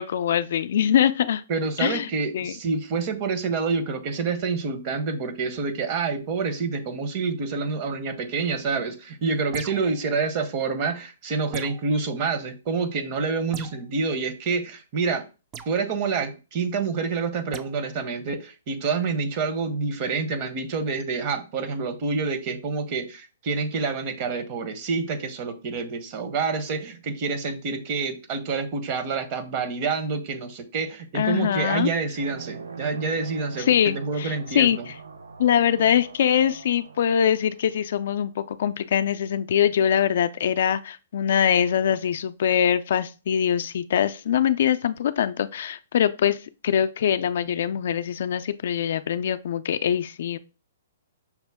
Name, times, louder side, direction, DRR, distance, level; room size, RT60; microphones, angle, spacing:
voice 1, 0.0-1.4 1.8-2.1 2.3-2.6 31.1-31.9 33.7-34.8 35.4-46.4 46.6-50.4, left 9 dB, 60° left, 0.3 m, -23 dB
voice 2, 1.5-15.2 15.7-34.9, right 4 dB, 40° right, 0.8 m, -27 dB
sound 1, 9.5-10.0 11.5-11.9 13.5-13.8 15.5-15.8 17.5-17.7, right 6 dB, 25° right, 0.3 m, -40 dB
sound 2, 32.1-38.3, right 5 dB, 80° right, 0.5 m, -42 dB
5.8 x 2.1 x 3.4 m
hypercardioid pair, 135°, 0 cm